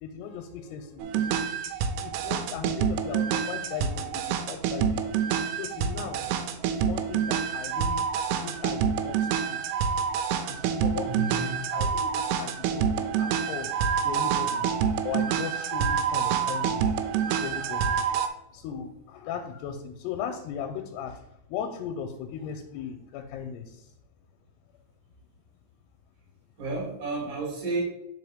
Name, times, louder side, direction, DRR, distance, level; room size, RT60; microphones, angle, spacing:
voice 1, 0.0-1.4 2.0-5.2 5.5-6.2 6.6-8.1 8.4-9.6 10.5-11.3 11.7-13.7 14.0-14.7 15.0-16.9 17.1-18.0 18.5-21.2 21.5-23.9, left 7 dB, 85° left, 4 dB, 2.6 m, -37 dB
sound 1, 1.0-18.3, right 7 dB, 90° right, 2.7 m, -27 dB
voice 2, 11.1-11.6 26.6-27.8, right 3 dB, 35° right, -2 dB, 1.7 m, -32 dB
5.0 x 4.5 x 4.9 m, 0.80 s
omnidirectional pair, 4.7 m